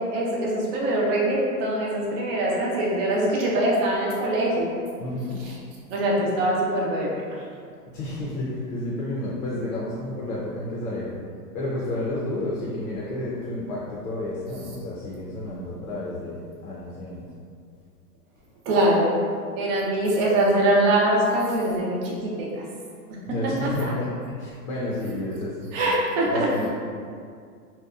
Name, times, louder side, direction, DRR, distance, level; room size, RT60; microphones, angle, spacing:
voice 1, 0.1-4.7 5.4-5.6 5.9-7.2 18.7-19.1 19.6-22.6 23.3-23.9 25.7-26.5, right 1 dB, 40° right, -4 dB, 0.6 m, -23 dB
voice 2, 5.0-5.4 7.9-11.1 11.5-17.2 23.3-24.1 24.4-25.7 26.3-26.7, left 1 dB, 60° left, -5 dB, 0.7 m, -30 dB
2.7 x 2.1 x 2.4 m, 2.2 s
hypercardioid pair, 130°, 48 cm